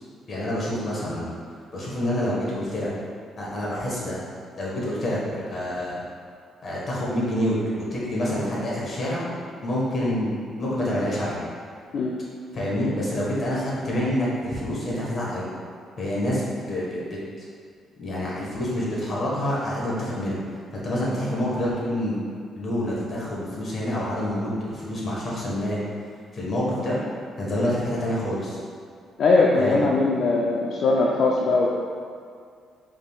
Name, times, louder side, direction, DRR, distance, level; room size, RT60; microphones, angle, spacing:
voice 1, 0.3-1.3 1.7-2.9 3.4-4.2 4.6-6.0 6.6-9.2 9.6-10.3 10.6-11.4 12.5-15.5 16.0-16.4 16.7-17.0 18.0-20.4 20.8-22.1 22.6-25.8 26.3-27.0 27.4-28.6 29.6-29.8, left 1 dB, 45° left, -6 dB, 1.4 m, -27 dB
voice 2, 29.2-31.7, left 3 dB, 65° left, -3 dB, 0.4 m, -20 dB
5.0 x 3.7 x 2.4 m, 2.2 s
cardioid pair, 90°, 0 cm